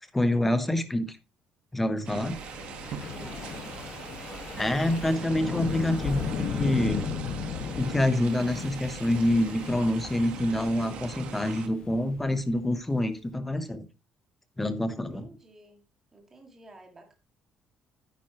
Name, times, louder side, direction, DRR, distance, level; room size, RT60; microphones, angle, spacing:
voice 1, 0.1-1.2 1.7-2.4 4.6-7.0 7.8-13.9 14.6-15.3, left 1 dB, 10° left, 0.9 m, -26 dB
sound 1, 2.0-11.7, right 8 dB, 55° right, 1.2 m, -42 dB
Wind, 2.3-12.5, left 6 dB, 45° left, 1.5 m, -36 dB
voice 2, 3.1-3.6 4.9-5.7 14.9-15.8 16.1-17.2, right 2 dB, 15° right, 1.9 m, -51 dB
9.3 x 9.2 x 3.0 m
cardioid pair, 165°, 2 cm